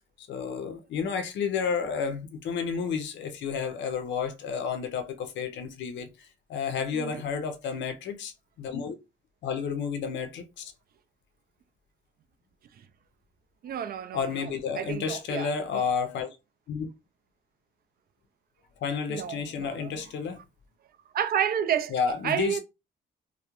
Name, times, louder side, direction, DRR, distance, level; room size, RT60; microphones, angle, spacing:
voice 1, 0.2-9.0 9.4-10.7 14.1-16.3 16.7-16.9 18.8-20.4 21.9-22.6, left 6 dB, 65° left, 0.5 m, -31 dB
voice 2, 13.6-15.9 19.1-19.9 21.1-22.6, right 9 dB, 50° right, 0.4 m, -31 dB
2.3 x 2.0 x 2.9 m
cardioid pair, 90°, 20 cm